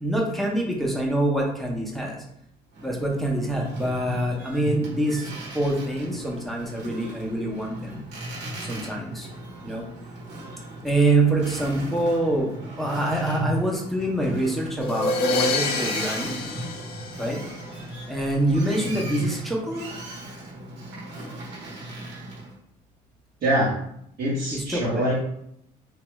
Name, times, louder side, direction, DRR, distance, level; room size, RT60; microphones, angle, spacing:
voice 1, 0.0-2.2 2.8-8.0 8.6-9.3 9.6-9.9 10.8-12.5 12.8-16.4 17.2-17.4 18.1-19.9 24.5-25.0, right 1 dB, ahead, -2 dB, 0.6 m, -25 dB
Boat Water vehicle, 2.7-22.5, right 1 dB, 85° right, 1.0 m, -37 dB
sound 1, 14.8-17.8, left 2 dB, 75° left, 0.5 m, -27 dB
voice 2, 23.4-23.7 24.2-25.1, right 1 dB, 60° right, -6 dB, 0.9 m, -24 dB
3.0 x 2.3 x 3.0 m, 0.73 s
cardioid pair, 110°, 17 cm